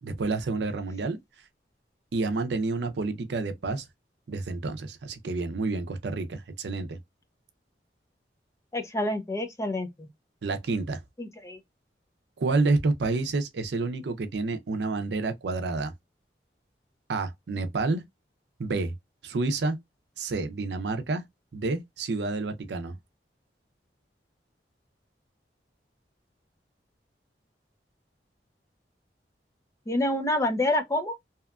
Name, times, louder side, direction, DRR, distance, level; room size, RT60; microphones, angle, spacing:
voice 1, 0.0-1.2 2.1-3.8 4.3-7.0 10.4-11.0 12.4-15.9 17.1-18.0 18.6-18.9 19.2-19.8 20.2-21.2 21.5-22.9, right 3 dB, 75° right, 0.5 m, -29 dB
voice 2, 8.7-10.1 11.2-11.6 29.9-31.1, left 1 dB, 20° left, 0.5 m, -27 dB
2.8 x 2.2 x 2.3 m
head